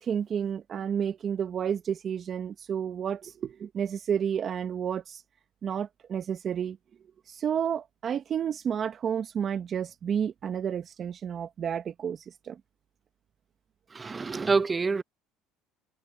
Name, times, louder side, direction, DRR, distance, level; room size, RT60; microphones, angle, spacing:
voice 1, 0.0-5.2 5.6-6.8 7.3-12.6 14.3-14.4, right 8 dB, 45° right, 1.5 m, -31 dB
voice 2, 13.9-15.0, right 4 dB, 25° right, 0.5 m, -26 dB
supercardioid pair, 90°, 0 cm